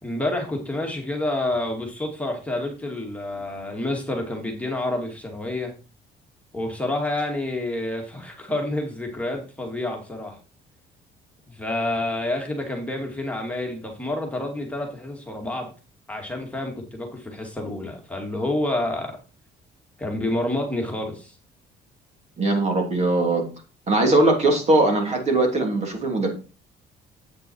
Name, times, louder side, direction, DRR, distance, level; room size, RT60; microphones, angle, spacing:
voice 1, 0.0-5.7 6.5-10.4 11.5-15.7 16.1-19.2 20.0-21.4, left 1 dB, 10° left, 1 dB, 2.2 m, -28 dB
voice 2, 22.4-23.4 23.9-26.3, right 2 dB, 40° right, 3 dB, 3.1 m, -20 dB
8.5 x 5.9 x 4.6 m, 0.34 s
cardioid pair, 110°, 17 cm